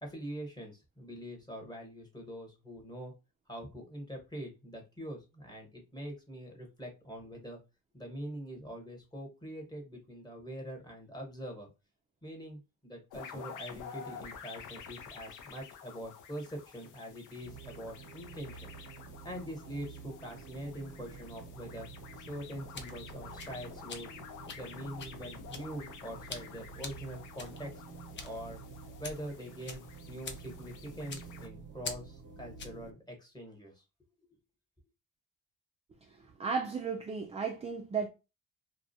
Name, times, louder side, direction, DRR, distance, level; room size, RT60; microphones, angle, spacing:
voice 1, 0.0-3.1 3.5-7.6 7.9-11.7 12.2-18.7 19.2-21.9 22.2-24.1 24.5-27.8 28.2-28.6 29.0-33.8, equal, 15° left, 1.1 m, -44 dB
sound 1, 13.1-31.5, left 6 dB, 80° left, 0.6 m, -50 dB
sound 2, 17.4-32.9, right 5 dB, 80° right, 0.6 m, -50 dB
sound 3, 22.4-32.9, left 4 dB, 40° left, 0.5 m, -47 dB
voice 2, 36.0-38.1, right 5 dB, 20° right, 0.4 m, -35 dB
2.3 x 2.1 x 2.7 m
cardioid pair, 90°, 30 cm